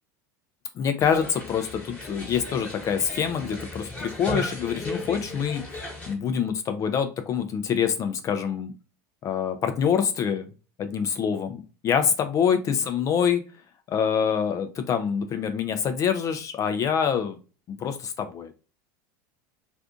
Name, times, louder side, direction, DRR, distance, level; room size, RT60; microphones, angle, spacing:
voice 1, 0.8-5.8 6.1-8.7 9.2-10.5 10.8-13.4 13.9-17.4 17.8-18.5, left 7 dB, 35° left, 8 dB, 0.4 m, -25 dB
sound 1, 1.0-6.1, left 1 dB, 15° left, 1.1 m, -36 dB
2.5 x 2.4 x 3.5 m, 0.34 s
supercardioid pair, 115°, 9 cm